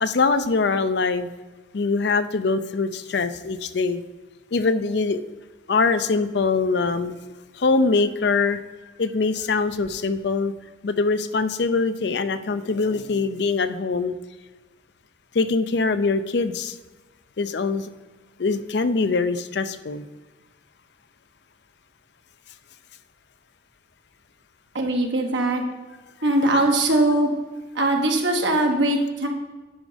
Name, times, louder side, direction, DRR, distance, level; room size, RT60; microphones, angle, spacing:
voice 1, 0.0-1.3 1.7-4.0 4.5-5.2 5.7-7.1 7.5-8.6 9.0-10.5 10.8-14.2 15.3-16.8 17.4-17.9 18.4-20.1, left 4 dB, 65° left, 12 dB, 0.5 m, -23 dB
voice 2, 24.7-25.6 26.2-27.3 27.7-29.3, right 1 dB, 75° right, 2 dB, 1.4 m, -21 dB
9.8 x 5.2 x 5.1 m, 1.2 s
head